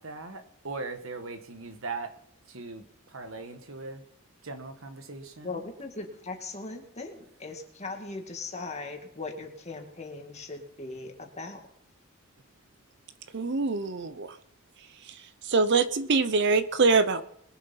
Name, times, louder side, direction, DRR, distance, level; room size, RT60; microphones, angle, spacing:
voice 1, 0.0-2.2 2.5-4.0 4.4-5.6, right 3 dB, 70° right, 1.3 m, -39 dB
voice 2, 5.4-11.6, left 3 dB, 30° left, 2.2 m, -39 dB
voice 3, 13.3-14.4 15.0-15.2 15.4-17.2, right 4 dB, 55° right, 0.7 m, -24 dB
22.0 x 7.4 x 5.7 m
head